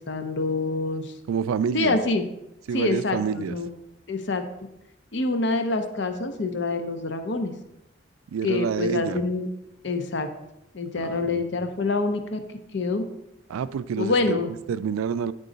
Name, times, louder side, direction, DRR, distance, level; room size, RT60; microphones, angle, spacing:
voice 1, 0.0-1.1 1.7-2.2 2.7-3.7 4.1-4.4 5.1-7.5 8.4-9.5 9.8-10.3 10.7-12.4 12.7-13.0 14.0-14.5, left 3 dB, 60° left, 8 dB, 0.6 m, -26 dB
voice 2, 1.3-2.0 2.7-3.6 8.3-9.2 11.0-11.6 13.5-14.4 14.7-15.3, right 7 dB, 90° right, 15 dB, 0.3 m, -28 dB
10.0 x 3.7 x 3.9 m, 0.88 s
head